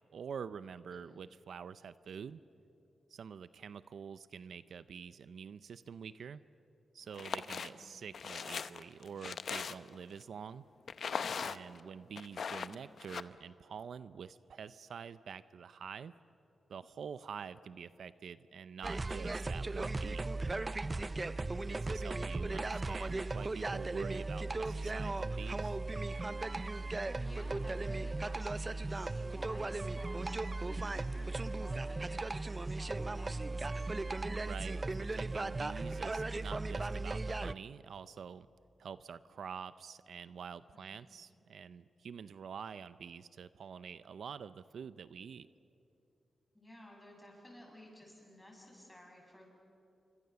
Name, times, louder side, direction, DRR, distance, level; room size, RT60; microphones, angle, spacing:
voice 1, 0.1-2.4 3.1-6.4 6.9-10.7 11.4-16.1 16.7-20.3 21.7-25.8 34.3-38.5 38.8-45.5, right 7 dB, 80° right, 15 dB, 0.5 m, -47 dB
voice 2, 0.9-1.2 7.4-7.8 12.5-12.9 26.8-33.9 40.7-41.2 46.5-49.5, left 1 dB, 15° left, 0 dB, 7.6 m, -55 dB
sound 1, 7.1-7.7 8.1-10.0 10.9-11.8 12.2-13.2, left 6 dB, 70° left, 0.7 m, -39 dB
sound 2, 18.8-37.5, right 2 dB, 30° right, 0.5 m, -37 dB
27.0 x 24.5 x 6.9 m, 2.8 s
cardioid pair, 80°, 0 cm